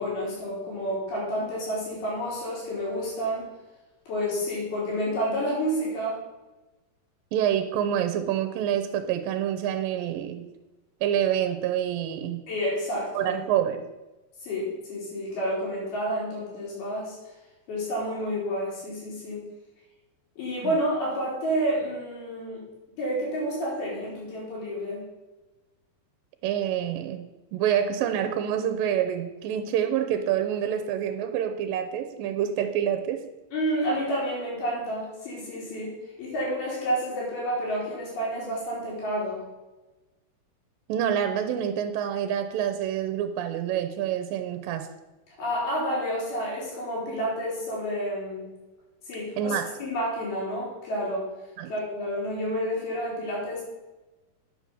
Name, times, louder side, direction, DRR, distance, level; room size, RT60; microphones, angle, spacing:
voice 1, 0.0-3.5 4.1-6.2 12.5-13.4 14.4-17.2 17.7-19.5 20.4-22.6 23.0-25.0 33.5-35.9 36.2-39.4 45.4-48.5 49.1-51.3 51.7-53.6, equal, 75° left, -5 dB, 5.5 m, -29 dB
voice 2, 7.3-10.5 11.0-12.5 13.2-13.9 20.6-20.7 26.4-33.2 40.9-44.9 49.4-49.7 51.6-51.7, right 9 dB, 80° right, 7 dB, 2.3 m, -27 dB
9.8 x 6.1 x 6.8 m, 1.1 s
omnidirectional pair, 4.4 m